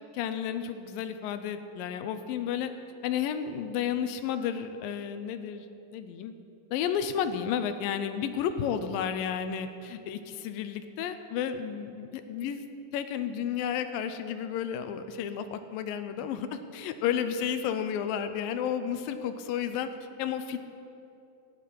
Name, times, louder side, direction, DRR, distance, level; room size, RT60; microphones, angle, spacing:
voice 1, 0.1-2.7 3.0-5.7 5.9-6.3 6.7-12.6 12.9-19.9 20.2-20.6, left 8 dB, 90° left, 10 dB, 2.4 m, -32 dB
13.5 x 6.7 x 9.6 m, 2.7 s
omnidirectional pair, 4.0 m